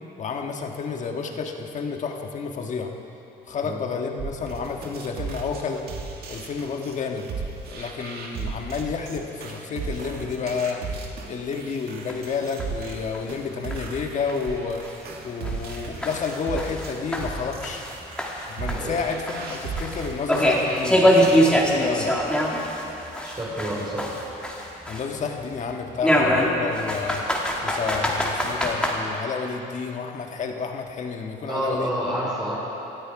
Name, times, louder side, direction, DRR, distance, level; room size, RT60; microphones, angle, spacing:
voice 1, 0.2-2.9 3.5-5.8 6.3-7.3 7.7-14.8 15.2-17.8 18.5-22.1 24.9-27.2 27.6-31.9, left 5 dB, 45° left, 3 dB, 1.5 m, -30 dB
sound 1, 4.2-20.9, right 4 dB, 70° right, 2.0 m, -36 dB
sound 2, 12.1-12.2 12.6-12.7 13.1-13.2 13.7-13.8 14.3-14.4 14.8-14.9 15.4-17.9 18.2-22.8 23.1-25.2 26.0-28.9, equal, 5° left, 2.2 m, -23 dB
voice 2, 23.2-24.1 31.5-32.6, equal, 25° right, -6 dB, 3.6 m, -28 dB
19.0 x 13.0 x 4.8 m, 3.0 s
cardioid pair, 110°, 17 cm